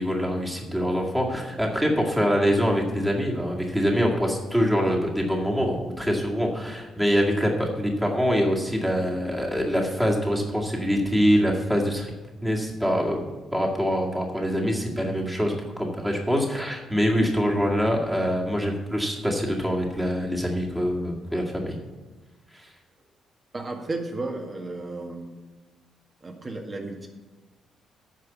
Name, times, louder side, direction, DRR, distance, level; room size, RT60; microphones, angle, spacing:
voice 1, 0.0-12.1 12.4-13.2 13.5-21.8 22.5-22.7, equal, 5° right, -1 dB, 2.1 m, -24 dB
voice 2, 23.5-25.3 26.2-27.1, right 2 dB, 30° right, 3 dB, 1.8 m, -33 dB
9.6 x 5.7 x 8.2 m, 1.2 s
cardioid pair, 90°, 0 cm